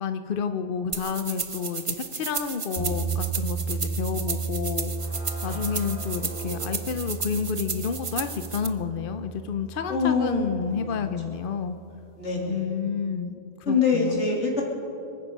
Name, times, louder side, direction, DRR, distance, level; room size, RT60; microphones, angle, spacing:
voice 1, 0.0-4.9 5.4-11.8 12.5-13.3 13.6-14.2, left 6 dB, 55° left, 9 dB, 0.8 m, -30 dB
sound 1, 0.9-8.7, right 5 dB, 35° right, 0.7 m, -34 dB
sound 2, 2.8-11.7, right 4 dB, 35° left, 4.6 m, -34 dB
sound 3, 3.6-3.9 4.2-8.8, right 3 dB, 70° right, 2.8 m, -44 dB
voice 2, 9.9-11.0 12.2-12.7 13.7-14.6, left 4 dB, 80° left, -2 dB, 3.2 m, -25 dB
26.0 x 9.6 x 5.4 m, 2.7 s
omnidirectional pair, 1.2 m